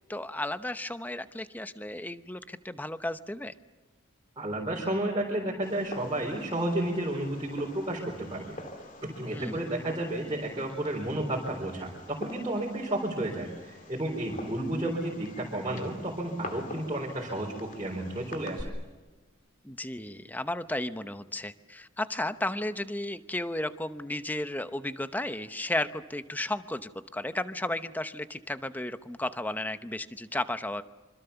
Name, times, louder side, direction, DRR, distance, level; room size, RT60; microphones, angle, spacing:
voice 1, 0.1-3.5 9.3-9.7 19.6-30.8, left 1 dB, 10° left, 11 dB, 0.8 m, -34 dB
voice 2, 4.4-8.6 9.0-18.7, right 1 dB, 25° right, -2 dB, 4.0 m, -32 dB
Fireworks, 5.6-18.6, left 2 dB, 40° left, 2.6 m, -46 dB
26.0 x 25.5 x 7.0 m, 1.3 s
head